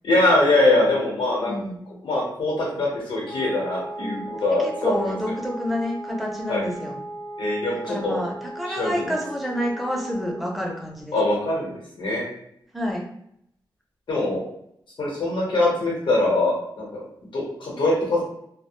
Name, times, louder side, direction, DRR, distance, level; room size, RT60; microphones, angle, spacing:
voice 1, 0.0-1.6 2.0-5.2 6.5-6.6 7.4-8.2 8.6-9.1 11.1-12.2 14.1-14.4 15.0-17.0 17.3-18.2, left 2 dB, 80° left, -4 dB, 0.9 m, -23 dB
voice 2, 1.5-1.8 4.0-7.0 7.9-11.1 12.7-13.0, equal, ahead, -1 dB, 0.5 m, -29 dB
Wind instrument woodwind instrument, 3.2-10.7, right 1 dB, 60° left, 0.6 m, -37 dB
2.3 x 2.1 x 3.0 m, 0.74 s
wide cardioid pair, 140°, 8 cm